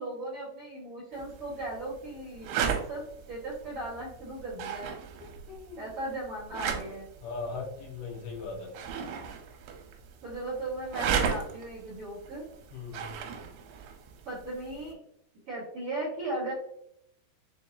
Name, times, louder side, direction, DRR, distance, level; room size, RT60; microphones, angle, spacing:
voice 1, 0.0-3.0 3.3-4.9 5.8-7.1 10.2-12.4 14.2-15.0 15.5-16.5, right 2 dB, 60° right, -8 dB, 1.5 m, -37 dB
sound 1, 1.1-14.9, right 7 dB, 90° right, 2.7 m, -37 dB
voice 2, 5.2-5.9 7.2-8.8 12.7-13.1, left 4 dB, 75° left, -2 dB, 2.5 m, -39 dB
6.9 x 2.4 x 2.7 m, 0.76 s
omnidirectional pair, 4.8 m